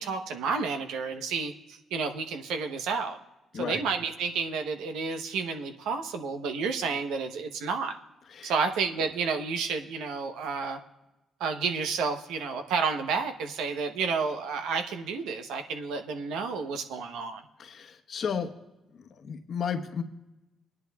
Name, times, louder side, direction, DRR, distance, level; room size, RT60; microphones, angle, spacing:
voice 1, 0.0-3.2 3.5-8.0 8.4-10.8 11.4-17.4, right 5 dB, 90° right, 6 dB, 0.9 m, -31 dB
voice 2, 17.6-18.5 19.0-20.0, left 7 dB, 55° left, 5 dB, 1.0 m, -33 dB
18.5 x 10.5 x 2.3 m, 1.0 s
cardioid pair, 90°, 0 cm